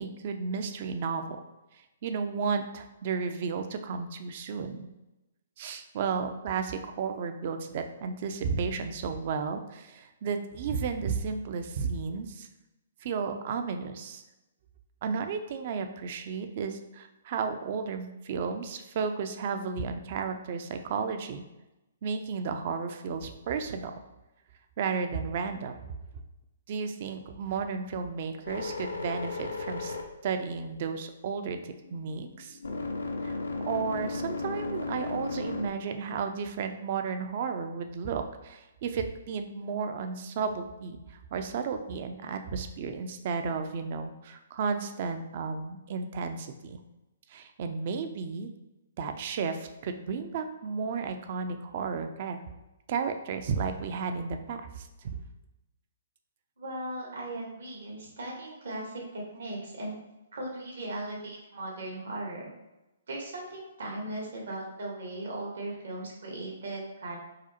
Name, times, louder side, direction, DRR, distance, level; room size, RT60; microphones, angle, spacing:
voice 1, 0.0-1.4 2.0-4.9 5.6-12.5 13.0-14.2 15.0-21.4 22.0-23.9 24.8-25.8 26.7-30.0 30.2-32.6 33.2-46.8 47.3-48.5 49.0-52.4 52.9-55.2, right 5 dB, 50° right, 7 dB, 0.4 m, -33 dB
sound 1, 28.5-31.1 31.6-35.7, left 3 dB, 90° left, 0.5 m, -35 dB
voice 2, 56.6-60.0 60.3-62.5 63.1-67.1, right 1 dB, 75° right, -3 dB, 1.3 m, -38 dB
4.8 x 2.0 x 2.9 m, 0.99 s
hypercardioid pair, 140°, 0 cm